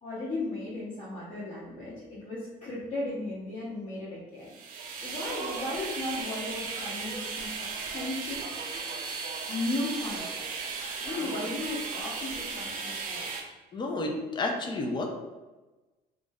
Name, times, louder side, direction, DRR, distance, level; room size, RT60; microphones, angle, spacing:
voice 1, 0.0-4.5 5.0-8.4 9.5-10.4 11.0-13.3, left 2 dB, 45° left, -9 dB, 1.0 m, -35 dB
sound 1, 4.5-13.4, right 4 dB, 55° right, 0.5 m, -36 dB
voice 2, 13.7-15.1, left 2 dB, 25° left, 2 dB, 0.5 m, -31 dB
2.4 x 2.1 x 3.5 m, 1.2 s
cardioid pair, 110°, 17 cm